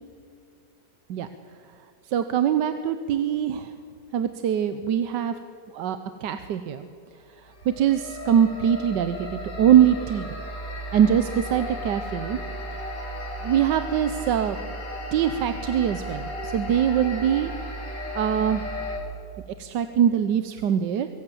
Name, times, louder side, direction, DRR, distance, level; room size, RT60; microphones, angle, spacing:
voice 1, 2.0-3.7 4.1-5.4 5.7-6.8 7.4-10.3 10.9-12.4 12.7-13.0 13.4-14.6 15.1-17.5 18.1-18.6 19.6-21.1, right 9 dB, 85° right, 10 dB, 1.4 m, -23 dB
sound 1, 7.4-19.0, equal, 90° left, 4.2 m, -35 dB
23.5 x 14.5 x 7.7 m, 2.5 s
omnidirectional pair, 1.9 m